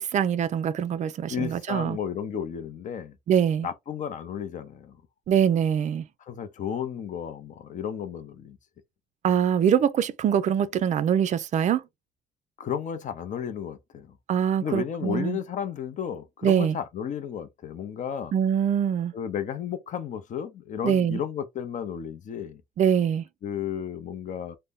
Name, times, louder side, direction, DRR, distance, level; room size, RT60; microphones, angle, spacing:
voice 1, 0.0-2.0 3.3-3.7 5.3-6.0 9.2-11.8 14.3-15.4 16.4-16.8 18.3-19.1 20.8-21.2 22.8-23.3, right 8 dB, 45° right, 0.4 m, -23 dB
voice 2, 1.3-3.1 3.6-5.0 6.3-8.6 12.6-14.1 14.6-18.3 19.1-22.6 23.4-24.6, left 8 dB, 50° left, 0.6 m, -33 dB
2.7 x 2.1 x 3.5 m
cardioid pair, 110°, 17 cm